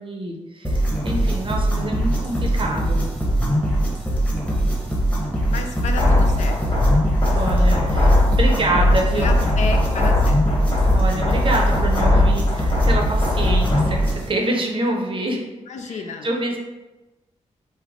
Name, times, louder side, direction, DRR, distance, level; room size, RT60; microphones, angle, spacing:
voice 1, 0.0-3.1 7.3-9.4 10.9-15.5 15.8-16.6, right 1 dB, 45° right, 0 dB, 0.6 m, -26 dB
sound 1, 0.6-14.3, right 1 dB, 10° left, 0.9 m, -22 dB
voice 2, 5.5-6.8 9.1-10.6 15.7-16.3, left 4 dB, 75° left, 4 dB, 0.4 m, -31 dB
sound 2, 6.0-14.0, left 2 dB, 50° left, 1.4 m, -19 dB
3.2 x 2.1 x 3.6 m, 1.1 s
cardioid pair, 80°, 12 cm